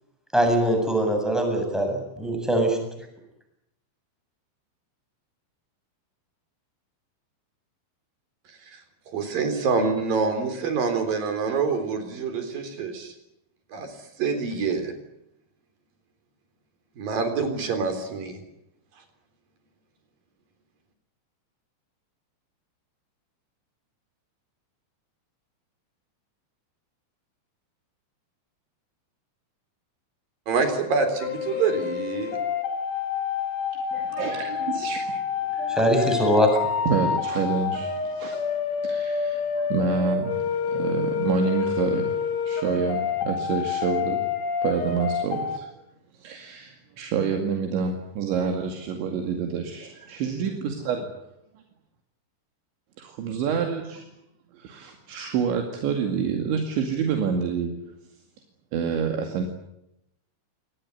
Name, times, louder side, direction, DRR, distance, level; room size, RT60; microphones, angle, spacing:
voice 1, 0.3-2.8 35.8-36.5, right 1 dB, ahead, 3 dB, 7.2 m, -22 dB
voice 2, 8.5-8.8 9.1-13.2 13.7-14.9 17.0-18.4 30.5-32.4, right 4 dB, 50° right, 8 dB, 5.2 m, -26 dB
sound 1, 31.2-45.6, left 6 dB, 65° left, 4.5 m, -28 dB
voice 3, 33.9-36.0 36.9-38.4 38.8-40.4 40.6-44.2 44.6-45.7 46.2-49.6 50.1-51.1 53.0-54.0 54.5-57.8 58.7-59.5, right 6 dB, 75° right, 4 dB, 4.6 m, -28 dB
26.0 x 19.5 x 9.6 m, 0.82 s
omnidirectional pair, 5.5 m